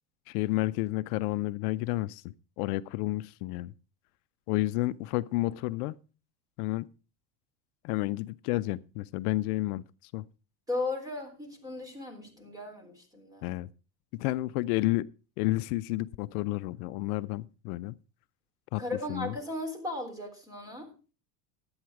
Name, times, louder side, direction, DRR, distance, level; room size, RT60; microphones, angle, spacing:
voice 1, 0.3-2.2 2.6-3.7 4.5-5.9 6.6-6.8 7.8-9.8 10.1-10.2 13.4-13.7 14.1-15.1 15.4-17.9 18.7-18.8 19.1-19.3, left 18 dB, 75° left, 0.6 m, -30 dB
voice 2, 10.7-13.5 18.8-20.9, left 2 dB, 10° right, 3.5 m, -36 dB
12.0 x 8.9 x 4.6 m
supercardioid pair, 135°, 45 cm